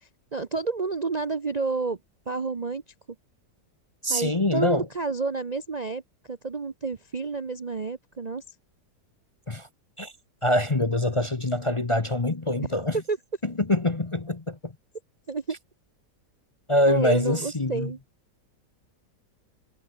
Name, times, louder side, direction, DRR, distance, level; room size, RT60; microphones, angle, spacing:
voice 1, 0.3-2.0 2.3-2.8 4.1-8.4 13.1-13.2 15.3-15.6 16.9-18.0, right 4 dB, 35° right, 0.7 m, -30 dB
voice 2, 4.0-4.9 9.5-9.7 10.0-10.1 10.4-13.0 13.4-14.7 16.7-17.9, left 1 dB, 20° left, 0.9 m, -24 dB
omnidirectional pair, 1.8 m